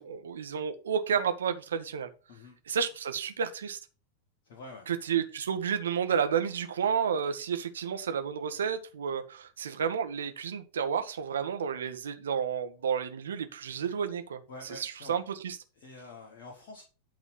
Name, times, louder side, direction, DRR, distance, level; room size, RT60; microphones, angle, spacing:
voice 1, 0.0-2.1 2.7-3.8 4.9-14.4 14.7-15.6, right 7 dB, 65° right, 8 dB, 1.2 m, -31 dB
voice 2, 4.4-4.9 14.5-15.2 15.8-16.8, left 3 dB, 50° left, 2 dB, 2.1 m, -47 dB
11.5 x 4.0 x 5.6 m, 0.34 s
figure-of-eight pair, 90°, 0 cm